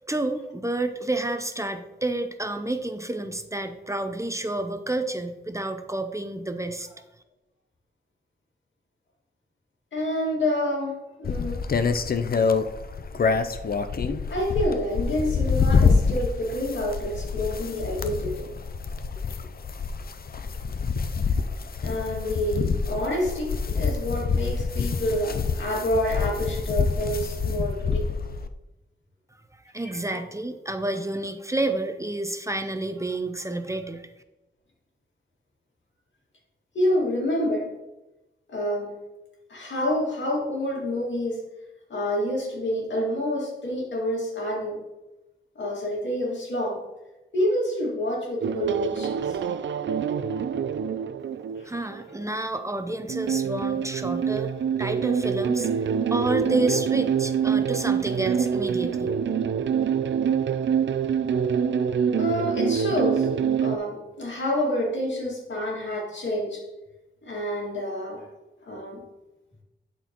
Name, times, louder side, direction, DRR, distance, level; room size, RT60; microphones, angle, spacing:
voice 1, 0.0-6.9 29.7-34.1 51.6-59.1, right 2 dB, 15° right, 7 dB, 0.7 m, -30 dB
voice 2, 9.9-11.6 14.3-18.5 21.8-28.1 29.8-30.2 36.7-37.7 38.5-38.9 39.5-41.4 41.9-44.8 45.6-46.8 47.3-49.4 51.6-51.7 62.2-63.3 63.6-66.6 67.2-68.3 68.6-69.0, left 1 dB, 80° left, -2 dB, 2.1 m, -28 dB
sound 1, 11.2-28.5, left 5 dB, 55° left, 0.5 m, -26 dB
sound 2, 48.4-52.2 53.1-63.8, right 7 dB, 80° right, 0.5 m, -25 dB
11.5 x 4.4 x 3.0 m, 1.0 s
cardioid pair, 60°, 19 cm